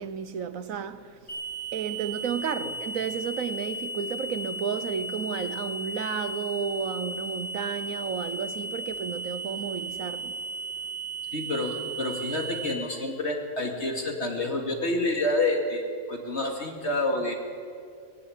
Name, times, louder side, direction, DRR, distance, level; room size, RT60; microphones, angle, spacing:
voice 1, 0.0-1.3 1.7-10.4, right 7 dB, 75° right, 1.3 m, -32 dB
sound 1, 1.3-12.7, right 2 dB, 30° left, 7.5 m, -35 dB
voice 2, 11.3-17.4, left 2 dB, 50° left, 2.8 m, -28 dB
20.5 x 15.5 x 10.0 m
omnidirectional pair, 1.4 m